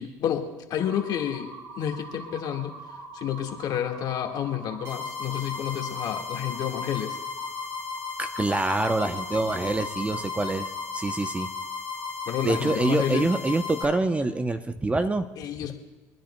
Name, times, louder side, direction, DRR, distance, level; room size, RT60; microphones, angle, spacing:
voice 1, 0.0-1.5 1.8-2.8 3.1-7.2 12.3-13.3 15.4-15.7, left 10 dB, 55° left, 4 dB, 1.7 m, -30 dB
sound 1, 0.8-13.1, right 3 dB, 65° right, 4.6 m, -43 dB
sound 2, 4.8-13.8, left 6 dB, 35° right, 3.6 m, -35 dB
voice 2, 8.2-11.5 12.4-15.3, right 2 dB, 15° right, 9 dB, 0.7 m, -26 dB
25.0 x 10.0 x 2.2 m, 1.2 s
supercardioid pair, 85°, 8 cm